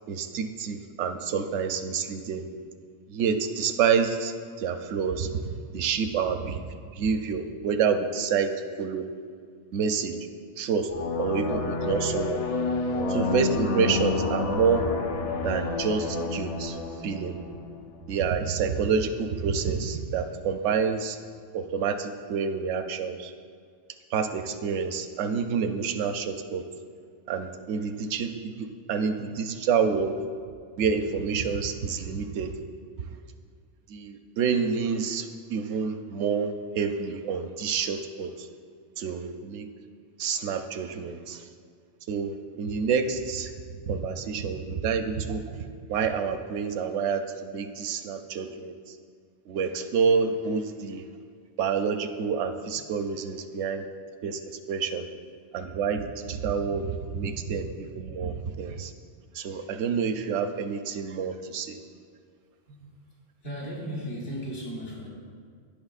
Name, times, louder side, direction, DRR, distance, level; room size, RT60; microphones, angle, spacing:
voice 1, 0.1-2.4 3.1-6.6 6.9-8.5 8.8-9.0 9.7-10.2 10.6-10.9 11.2-12.4 13.1-14.9 15.4-16.8 17.0-17.4 18.1-21.2 21.5-23.3 24.1-26.6 27.3-30.2 30.8-32.5 33.9-38.5 39.0-39.7 40.2-41.4 42.1-43.5 43.8-48.8 49.5-51.0 51.6-53.8 54.2-55.0 55.5-58.9 59.3-61.8, right 6 dB, 80° right, 8 dB, 0.9 m, -28 dB
sound 1, 10.9-18.3, left 3 dB, 55° left, 0.4 m, -29 dB
voice 2, 62.7-63.0 63.4-65.1, equal, 80° left, -5 dB, 1.9 m, -36 dB
14.0 x 5.7 x 2.4 m, 2.1 s
omnidirectional pair, 1.2 m